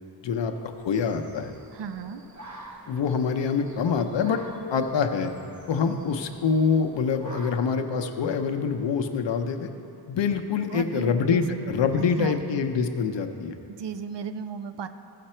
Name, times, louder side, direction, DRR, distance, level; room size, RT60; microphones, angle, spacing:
sound 1, 0.6-7.6, right 2 dB, 40° right, 1.1 m, -48 dB
voice 1, 0.8-1.5 2.9-4.4 4.7-5.3 5.7-9.7 10.1-13.5, left 6 dB, 85° left, 6 dB, 0.8 m, -25 dB
voice 2, 1.7-2.2 10.7-11.4 11.9-12.4 13.7-14.9, right 7 dB, 75° right, 10 dB, 0.6 m, -35 dB
15.0 x 5.9 x 4.4 m, 2.8 s
wide cardioid pair, 140°, 42 cm